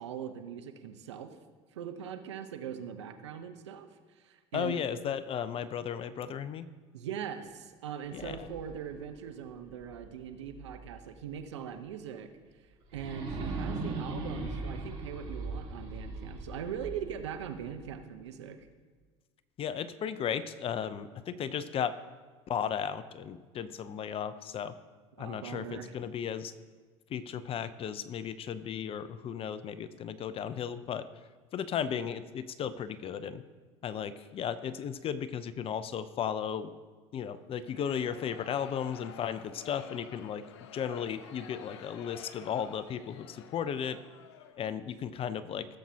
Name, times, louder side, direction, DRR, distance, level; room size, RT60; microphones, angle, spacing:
voice 1, 0.0-1.4 1.7-4.8 6.9-12.3 12.9-18.7 25.2-26.0, right 8 dB, 85° right, 8 dB, 0.8 m, -41 dB
voice 2, 4.5-6.7 8.1-8.5 19.6-22.0 22.5-24.7 25.2-26.5 27.1-31.1 31.5-33.4 33.8-36.7 37.1-40.4 40.7-44.0 44.6-45.7, left 8 dB, 40° left, 14 dB, 0.6 m, -35 dB
sound 1, 8.0-10.9 11.4-11.5 12.9-17.9, right 3 dB, 65° right, 3.4 m, -40 dB
sound 2, 37.6-44.8, left 9 dB, 80° left, 0.7 m, -50 dB
16.5 x 7.5 x 2.8 m, 1.4 s
hypercardioid pair, 80°, 14 cm